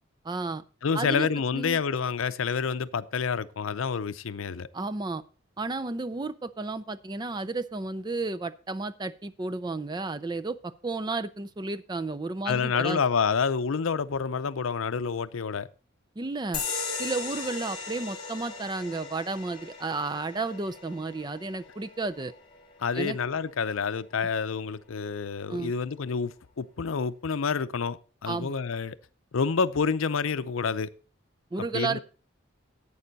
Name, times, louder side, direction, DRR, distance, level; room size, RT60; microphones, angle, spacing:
voice 1, 0.2-0.6 0.9-1.3 1.5-1.8 4.7-5.2 5.6-13.0 16.2-16.6 17.0-22.3 22.9-23.2 25.5-25.7 28.3-28.5 31.5-32.0, right 3 dB, 20° right, 0.4 m, -32 dB
voice 2, 0.8-4.7 12.5-15.7 22.8-28.0 28.2-29.0 29.3-30.9 31.7-32.0, left 5 dB, 80° left, 0.5 m, -28 dB
sound 1, 16.5-23.6, left 5 dB, 25° left, 3.2 m, -38 dB
11.5 x 8.6 x 4.0 m
head